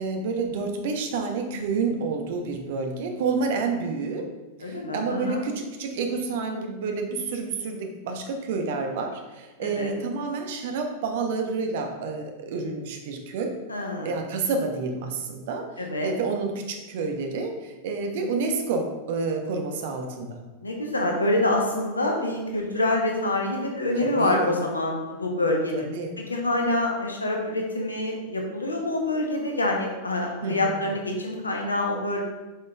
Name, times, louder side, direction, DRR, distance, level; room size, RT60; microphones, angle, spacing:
voice 1, 0.0-4.2 4.7-13.5 14.0-20.4 23.9-24.5 25.9-26.1 30.4-30.7, right 4 dB, 55° right, 4 dB, 0.9 m, -29 dB
voice 2, 4.6-5.4 9.6-9.9 13.7-14.1 15.8-16.2 20.6-25.9 26.2-32.2, left 1 dB, 80° left, 1 dB, 1.0 m, -26 dB
7.5 x 5.3 x 2.4 m, 1.1 s
figure-of-eight pair, 90°, 0 cm